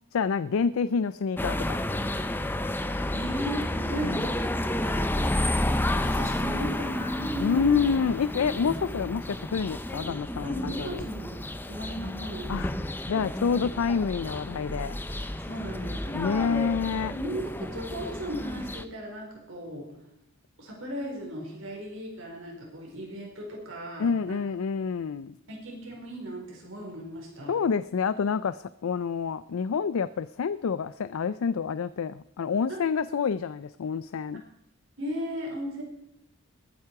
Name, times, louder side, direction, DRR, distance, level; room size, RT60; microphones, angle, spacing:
voice 1, 0.1-1.8 4.0-4.3 7.4-11.0 12.5-12.7 13.1-15.0 16.1-17.1 24.0-25.3 27.5-34.4, left 6 dB, 75° left, 15 dB, 0.4 m, -28 dB
sound 1, 1.4-18.8, left 1 dB, 10° left, 0.6 m, -31 dB
voice 2, 3.1-4.4 4.7-5.1 6.0-7.8 10.4-11.4 11.7-12.9 15.5-16.5 17.1-19.9 20.6-24.4 25.5-27.6 32.7-32.8 35.0-35.8, equal, 65° right, 0 dB, 4.7 m, -36 dB
21.0 x 9.4 x 4.7 m, 0.78 s
head